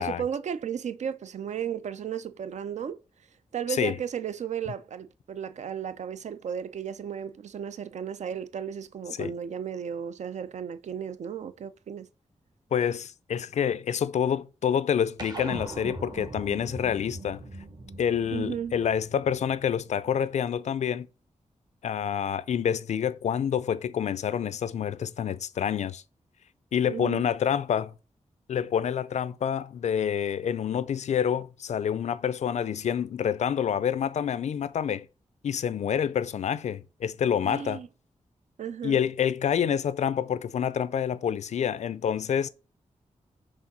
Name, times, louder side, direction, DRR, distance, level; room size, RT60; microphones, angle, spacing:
voice 1, 0.0-3.0 3.5-12.1 18.3-18.7 26.8-27.3 37.4-37.9 38.6-39.0, right 8 dB, 70° right, 0.5 m, -34 dB
voice 2, 12.7-17.4 18.0-21.1 21.8-26.0 26.7-27.9 28.5-35.1 35.4-37.8 38.8-42.5, left 8 dB, 70° left, 0.4 m, -27 dB
sound 1, 15.2-19.9, right 2 dB, 35° right, 0.8 m, -41 dB
4.9 x 3.7 x 5.3 m
wide cardioid pair, 175°, 12 cm